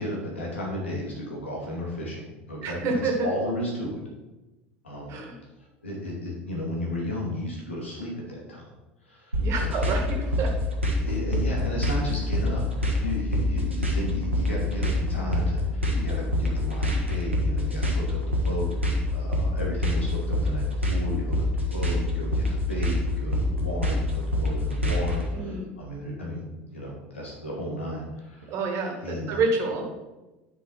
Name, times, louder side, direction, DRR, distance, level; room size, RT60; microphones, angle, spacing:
voice 1, 0.0-4.0 4.8-5.2 5.6-8.7 9.0-10.0 10.9-26.5 26.7-28.6 29.0-29.4, left 1 dB, 80° left, -2 dB, 2.5 m, -34 dB
voice 2, 2.6-3.1 5.1-5.3 9.4-10.5 25.3-25.7 28.5-29.9, right 4 dB, 50° right, 2 dB, 1.9 m, -28 dB
sound 1, 9.3-25.2, left 1 dB, 90° right, 1.4 m, -25 dB
9.9 x 5.0 x 4.3 m, 1.1 s
figure-of-eight pair, 70°, 6 cm